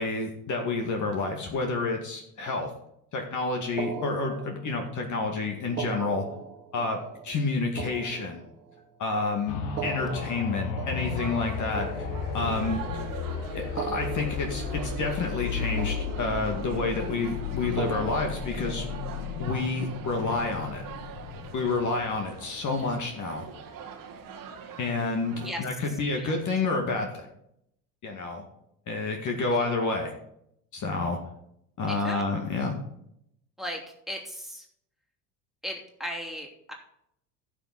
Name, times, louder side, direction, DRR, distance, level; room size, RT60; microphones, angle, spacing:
voice 1, 0.0-2.7 3.1-6.3 6.7-8.4 9.0-11.9 12.3-12.8 13.5-18.9 19.4-20.8 21.5-23.5 24.8-27.3 28.0-28.5 28.9-30.1 30.7-31.2 31.8-32.8, left 3 dB, 40° left, 2 dB, 2.2 m, -29 dB
sound 1, 3.8-5.0 5.7-9.0 9.6-12.9 13.6-15.5 15.8-16.8 17.6-19.5, right 8 dB, 85° right, 1.3 m, -40 dB
sound 2, 9.5-23.1 23.6-23.7, left 6 dB, 60° left, 1.9 m, -34 dB
sound 3, 10.9-25.5, right 7 dB, 45° right, 1.9 m, -43 dB
voice 2, 26.1-26.4 29.5-29.7 31.9-32.2 33.6-33.8 34.1-34.7 35.6-36.7, equal, ahead, 0 dB, 2.9 m, -36 dB
16.0 x 6.1 x 4.1 m, 0.74 s
hypercardioid pair, 75°, 47 cm